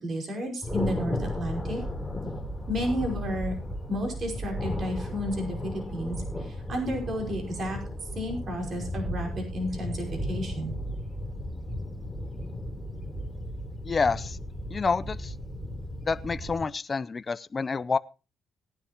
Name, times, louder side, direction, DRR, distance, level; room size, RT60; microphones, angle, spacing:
voice 1, 0.0-1.8 2.7-3.5 3.9-7.8 8.2-10.7, equal, 50° right, 2 dB, 5.3 m, -32 dB
Thunder, 0.6-16.6, left 1 dB, ahead, 3.7 m, -35 dB
voice 2, 13.8-14.4 14.7-15.3 16.1-18.0, left 4 dB, 35° left, 15 dB, 0.6 m, -28 dB
18.0 x 10.5 x 3.0 m, 0.30 s
cardioid pair, 90°, 0 cm